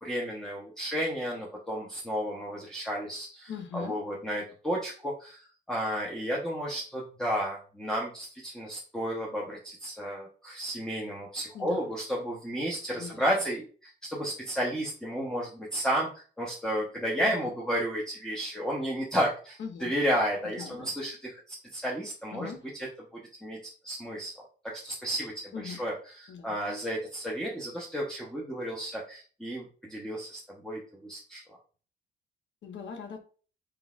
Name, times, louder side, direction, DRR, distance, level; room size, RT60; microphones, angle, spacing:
voice 1, 0.0-22.9 23.1-23.6 23.8-31.4, equal, 5° left, 0.9 m, -32 dB
voice 2, 3.5-3.9 11.5-11.9 12.9-13.3 17.2-17.5 19.6-19.9 20.6-20.9 22.3-22.6 25.5-25.8 26.3-26.6 32.6-33.2, left 6 dB, 65° left, 0.9 m, -40 dB
4.6 x 3.8 x 2.4 m
cardioid pair, 90°, 20 cm